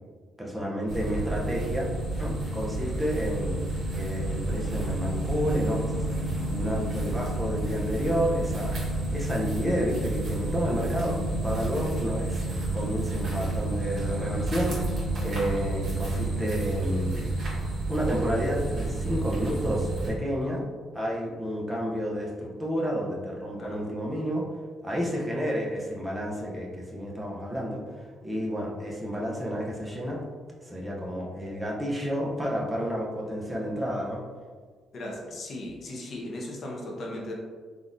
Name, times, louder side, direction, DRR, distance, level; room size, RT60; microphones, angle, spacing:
voice 1, 0.4-1.9 2.2-3.6 3.9-12.4 12.7-20.7 20.9-24.5 24.8-30.2 30.6-34.2, equal, 10° right, -2 dB, 0.6 m, -30 dB
sound 1, 0.9-20.1, right 2 dB, 50° right, 1.4 m, -30 dB
voice 2, 34.9-37.3, left 1 dB, 55° left, -1 dB, 0.7 m, -37 dB
3.7 x 2.4 x 2.6 m, 1.5 s
cardioid pair, 90°, 0 cm